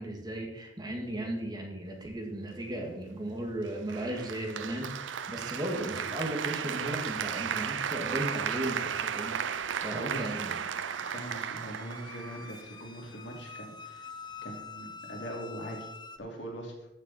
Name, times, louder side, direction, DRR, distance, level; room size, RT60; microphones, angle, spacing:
voice 1, 0.0-9.4 9.8-10.6, right 1 dB, 20° right, 1 dB, 1.9 m, -36 dB
Applause, 3.9-12.9, right 7 dB, 85° right, 0.5 m, -35 dB
sound 1, 8.9-16.2, left 5 dB, 25° left, 0.6 m, -48 dB
voice 2, 9.9-10.3 11.0-14.1 14.4-15.9 16.2-16.9, equal, 70° left, 0 dB, 2.8 m, -42 dB
14.5 x 6.9 x 4.2 m, 0.88 s
head